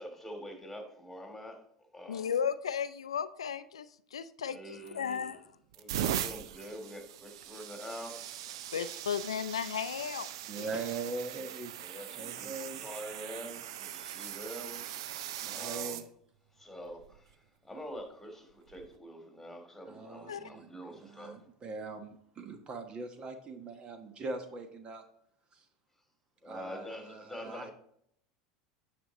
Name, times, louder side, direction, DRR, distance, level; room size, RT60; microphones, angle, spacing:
voice 1, 0.0-1.6 1.9-2.4 4.5-5.4 5.8-8.3 11.8-15.2 15.5-16.0 16.5-17.3 17.6-21.4 26.4-27.7, equal, 5° left, 2.8 m, -45 dB
voice 2, 2.1-5.4 8.7-10.3 10.5-10.7 20.3-20.5, left 7 dB, 85° left, 0.4 m, -34 dB
sound 1, 4.9-5.2 5.7-16.0 16.9-17.2 18.7-18.9, right 11 dB, 70° right, 0.6 m, -40 dB
voice 3, 10.5-11.7 12.1-12.8 15.4-16.0 19.9-25.0 25.5-25.6 26.4-27.7, right 3 dB, 35° right, 1.3 m, -41 dB
9.3 x 6.5 x 4.1 m
hypercardioid pair, 85°, 3 cm